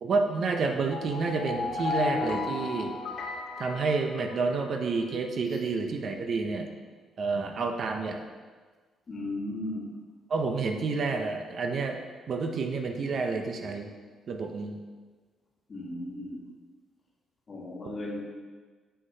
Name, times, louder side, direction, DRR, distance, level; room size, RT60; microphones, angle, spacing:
voice 1, 0.0-2.9 3.6-6.7 7.2-8.2 10.3-12.0 12.3-13.9 14.3-14.8, right 4 dB, 55° right, 4 dB, 0.6 m, -29 dB
sound 1, 0.8-4.8, left 4 dB, 60° left, 0.9 m, -34 dB
voice 2, 9.1-9.8 15.7-16.4 17.5-18.2, left 1 dB, 40° left, -2 dB, 1.4 m, -36 dB
6.3 x 5.8 x 2.8 m, 1.4 s
cardioid pair, 90°, 0 cm